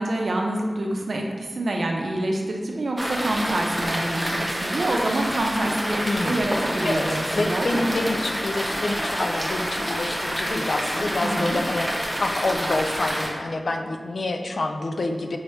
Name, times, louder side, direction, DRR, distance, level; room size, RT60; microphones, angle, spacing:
voice 1, 0.0-7.9 11.2-11.6, right 1 dB, 75° right, 1 dB, 0.6 m, -26 dB
sound 1, 3.0-13.3, equal, 5° right, 0.8 m, -28 dB
voice 2, 6.0-6.6 6.8-7.0 7.4-15.4, left 2 dB, 75° left, 4 dB, 0.4 m, -27 dB
5.4 x 2.9 x 3.2 m, 1.5 s
wide cardioid pair, 60°, 0 cm